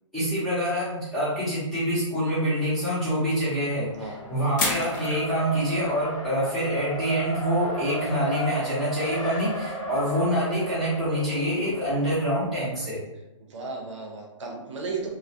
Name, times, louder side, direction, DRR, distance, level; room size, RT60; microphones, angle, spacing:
voice 1, 0.1-13.0, equal, ahead, -13 dB, 0.7 m, -26 dB
sound 1, 1.9-2.0 4.6-5.3, left 3 dB, 40° left, 0.5 m, -27 dB
Race car auto racing, 3.5-12.6, right 1 dB, 85° left, 0.8 m, -35 dB
voice 2, 13.4-15.1, right 4 dB, 65° right, 0 dB, 0.7 m, -34 dB
2.2 x 2.1 x 2.6 m, 0.98 s
hypercardioid pair, 165°, 16 cm